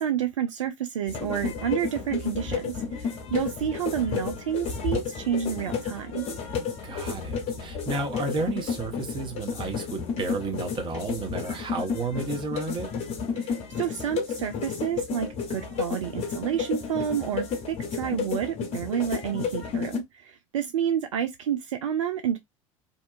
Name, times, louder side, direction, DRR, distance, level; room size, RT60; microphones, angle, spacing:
voice 1, 0.0-6.2 13.3-22.4, right 9 dB, 70° right, 0.4 m, -29 dB
sound 1, 1.1-20.0, left 6 dB, 40° left, 0.9 m, -32 dB
voice 2, 6.8-12.9, right 3 dB, 30° right, 0.8 m, -32 dB
2.7 x 2.2 x 2.4 m
figure-of-eight pair, 70°, 17 cm